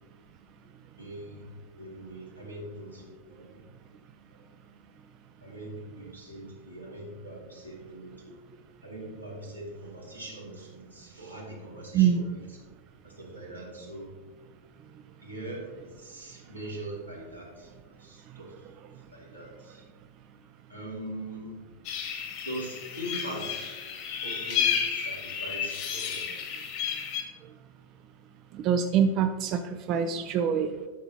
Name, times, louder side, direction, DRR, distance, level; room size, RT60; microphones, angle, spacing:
voice 1, 1.0-1.5 1.8-3.6 4.4-4.5 5.4-8.4 8.8-12.6 13.0-14.1 15.2-18.5 19.1-19.8 20.7-21.6 22.4-23.7 24.2-26.2, right 1 dB, 90° right, -4 dB, 2.4 m, -41 dB
sound 1, 21.8-27.2, left 7 dB, 45° left, 1.5 m, -32 dB
voice 2, 28.6-29.6 29.9-30.7, right 8 dB, 35° right, 7 dB, 0.4 m, -24 dB
12.0 x 6.7 x 2.9 m, 1.4 s
figure-of-eight pair, 90°, 0 cm